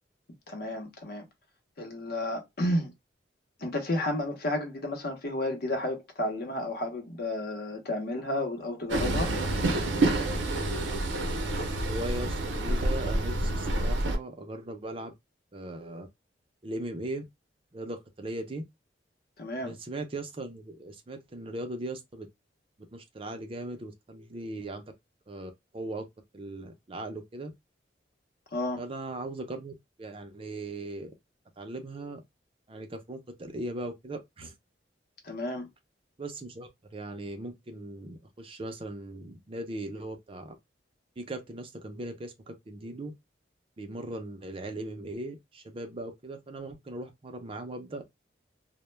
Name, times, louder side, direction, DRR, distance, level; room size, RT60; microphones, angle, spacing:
voice 1, 0.5-1.3 1.8-2.9 3.6-9.6 19.4-19.7 28.5-28.8 35.2-35.7, left 1 dB, 55° left, 0.7 m, -32 dB
Train, 8.9-14.2, right 2 dB, 80° right, 0.6 m, -28 dB
voice 2, 11.8-15.1 15.5-16.1 16.6-17.2 17.7-18.6 19.6-22.3 22.9-24.8 25.3-26.1 26.3-27.5 28.8-29.7 30.0-31.1 31.6-32.2 32.7-34.5 36.2-40.6 41.2-43.1 43.8-48.0, right 2 dB, 30° right, 0.5 m, -38 dB
2.1 x 2.1 x 3.0 m
head